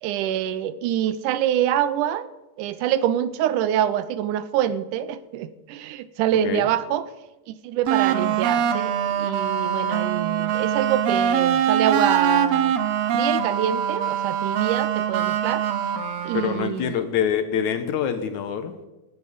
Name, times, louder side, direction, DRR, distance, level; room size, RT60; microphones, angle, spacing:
voice 1, 0.0-2.3 2.6-7.1 7.5-12.8 13.1-15.6 16.3-16.9, right 11 dB, 85° right, 15 dB, 2.2 m, -25 dB
sound 1, 7.9-16.7, right 8 dB, 70° right, 1.8 m, -23 dB
voice 2, 16.3-18.8, left 8 dB, 70° left, 10 dB, 2.3 m, -25 dB
19.0 x 9.8 x 5.0 m, 1.1 s
omnidirectional pair, 3.7 m